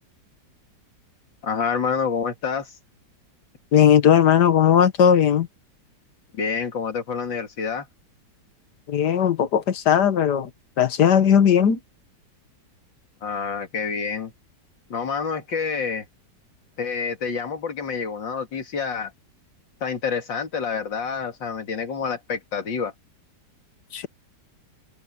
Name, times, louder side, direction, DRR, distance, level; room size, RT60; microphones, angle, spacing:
voice 1, 1.4-2.7 6.3-7.9 13.2-14.3 14.9-16.0 16.8-19.1 19.8-22.9, left 5 dB, 85° left, 3.1 m, -28 dB
voice 2, 3.7-5.5 8.9-10.5 10.8-11.8 23.9-24.1, left 8 dB, 65° left, 1.7 m, -17 dB
open air
omnidirectional pair, 1.9 m